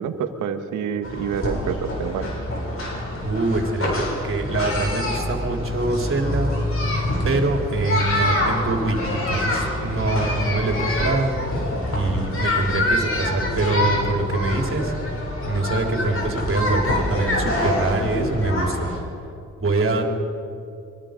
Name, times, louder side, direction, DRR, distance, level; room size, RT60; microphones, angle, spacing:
voice 1, 0.0-2.3, right 7 dB, 90° right, 7 dB, 1.6 m, -27 dB
sound 1, 1.0-19.0, left 1 dB, 50° left, 6.9 m, -25 dB
voice 2, 3.2-6.5 7.2-11.3 12.0-14.9 15.5-18.9 19.6-20.0, right 2 dB, 45° right, 2 dB, 3.8 m, -24 dB
25.5 x 22.5 x 5.3 m, 2.6 s
cardioid pair, 70°, 29 cm